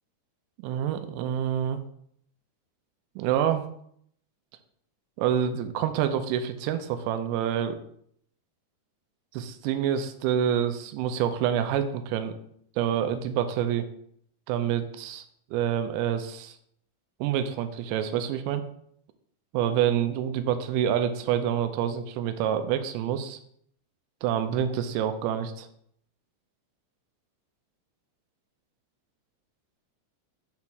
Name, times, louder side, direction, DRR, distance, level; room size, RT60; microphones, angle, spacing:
voice 1, 0.6-1.8 3.2-3.7 5.2-7.8 9.3-12.4 12.8-13.9 14.5-15.2 15.5-16.5 17.2-18.6 19.5-23.4 24.2-25.7, right 9 dB, 85° right, 9 dB, 2.8 m, -27 dB
7.1 x 3.2 x 6.1 m, 0.67 s
omnidirectional pair, 5.3 m